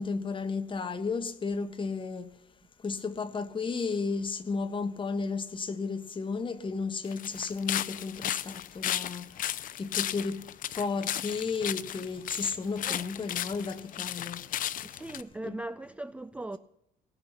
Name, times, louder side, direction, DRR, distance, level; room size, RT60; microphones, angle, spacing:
voice 1, 0.0-2.4 2.8-9.4 9.8-14.4 15.4-15.6, left 4 dB, 30° left, 1.3 m, -33 dB
sound 1, 7.0-15.2, left 11 dB, 55° left, 0.6 m, -34 dB
voice 2, 14.8-16.6, right 2 dB, 5° right, 0.4 m, -39 dB
17.0 x 5.7 x 9.4 m
cardioid pair, 110°, 17 cm